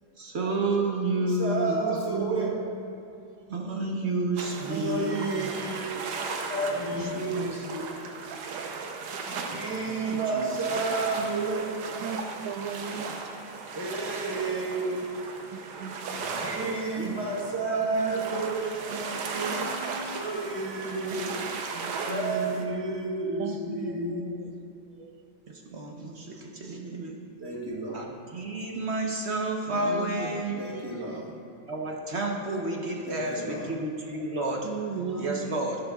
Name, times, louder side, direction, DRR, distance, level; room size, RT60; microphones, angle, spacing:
voice 1, 0.2-1.9 3.5-5.3 6.7-7.6 8.6-10.5 14.2-14.3 16.5-17.2 17.7-18.1 18.4-18.5 18.9-20.2 21.1-21.3 22.0-22.7 23.7-23.8 25.5-27.2 27.9-31.2 31.7-34.7 35.1-35.8, right 2 dB, 45° right, 0 dB, 0.9 m, -32 dB
voice 2, 1.3-2.7 4.7-8.0 9.3-11.7 13.7-15.3 16.2-18.9 20.0-21.7 22.0-24.6 27.4-28.1 30.6-31.4 33.1-33.8, right 3 dB, 15° right, -3 dB, 0.9 m, -31 dB
voice 3, 1.8-2.7 4.6-5.9 11.1-13.1 15.5-16.0 18.1-18.4 19.3-20.0 21.7-22.0 23.4-24.5 24.9-25.3 29.7-30.6 34.6-35.6, right 6 dB, 90° right, 7 dB, 1.4 m, -36 dB
sound 1, 4.4-22.6, right 4 dB, 65° right, 1.3 m, -36 dB
12.5 x 10.5 x 2.4 m, 2.7 s
omnidirectional pair, 2.1 m